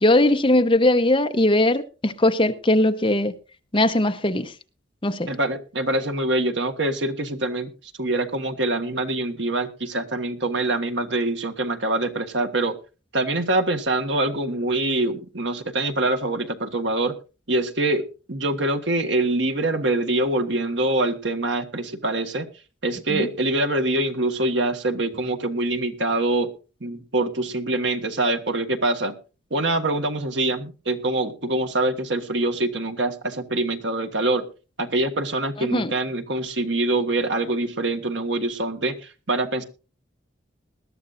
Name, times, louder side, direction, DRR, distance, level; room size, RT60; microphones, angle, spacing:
voice 1, 0.0-3.3 3.7-4.5 5.0-5.3 23.1-23.3 35.6-35.9, left 1 dB, 25° left, 0.9 m, -20 dB
voice 2, 5.3-7.7 8.0-12.8 13.1-17.1 17.5-22.5 22.8-26.5 26.8-29.1 29.5-34.5 34.8-38.9 39.3-39.6, right 2 dB, 70° right, 1.6 m, -24 dB
20.5 x 12.5 x 2.6 m
head